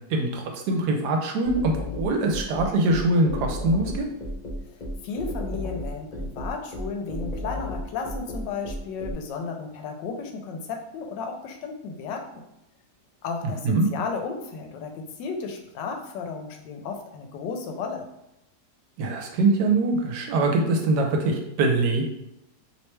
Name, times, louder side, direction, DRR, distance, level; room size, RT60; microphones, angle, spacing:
voice 1, 0.1-4.1 13.6-13.9 19.0-22.0, right 2 dB, 75° right, 3 dB, 1.2 m, -23 dB
sound 1, 1.4-9.1, left 1 dB, 60° left, 0.4 m, -32 dB
voice 2, 5.0-12.4 13.2-18.1, left 5 dB, 85° left, 3 dB, 1.3 m, -34 dB
3.2 x 3.1 x 3.1 m, 0.86 s
omnidirectional pair, 1.9 m